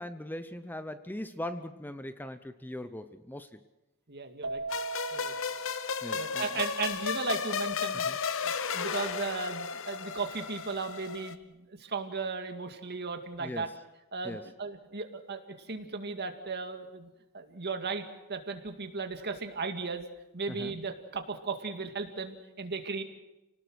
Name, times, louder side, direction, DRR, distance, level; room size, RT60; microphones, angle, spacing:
voice 1, 0.0-3.6 6.0-6.6 8.1-8.2 13.4-13.7 14.2-14.5 20.5-20.8, left 1 dB, 10° left, 11 dB, 0.7 m, -40 dB
voice 2, 4.1-4.6 5.1-5.3 6.1-8.1 8.4-13.7 14.1-15.4 15.7-17.1 17.3-20.1 20.3-23.0, right 4 dB, 50° right, 6 dB, 2.2 m, -36 dB
Keyboard (musical), 4.4-6.9, right 4 dB, 85° right, 2.1 m, -40 dB
sound 1, 4.7-11.3, left 6 dB, 65° left, 1.1 m, -34 dB
28.5 x 19.0 x 6.4 m, 0.97 s
head